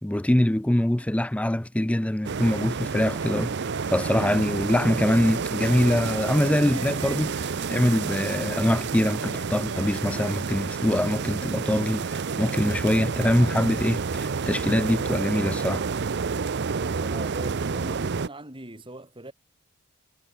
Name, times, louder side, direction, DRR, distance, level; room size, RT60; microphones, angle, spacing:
voice 1, 0.0-3.5 3.9-15.8, left 1 dB, 5° left, 0.4 m, -24 dB
sound 1, 2.2-18.3, right 5 dB, 50° right, 0.6 m, -29 dB
sound 2, 2.2-10.5, right 4 dB, 80° right, 3.0 m, -43 dB
voice 2, 16.6-19.3, right 1 dB, 25° right, 4.2 m, -41 dB
head